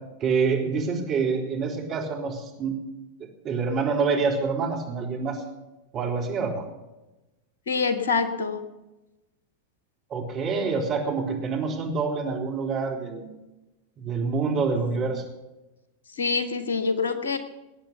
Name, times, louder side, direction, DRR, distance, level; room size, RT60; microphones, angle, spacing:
voice 1, 0.2-2.8 3.4-5.4 5.9-6.6 10.1-13.3 14.0-15.2, right 4 dB, 30° right, 0 dB, 3.8 m, -26 dB
voice 2, 7.7-8.6 16.2-17.4, left 4 dB, 65° left, 9 dB, 1.4 m, -25 dB
20.0 x 9.0 x 6.9 m, 1.0 s
figure-of-eight pair, 90°, 0 cm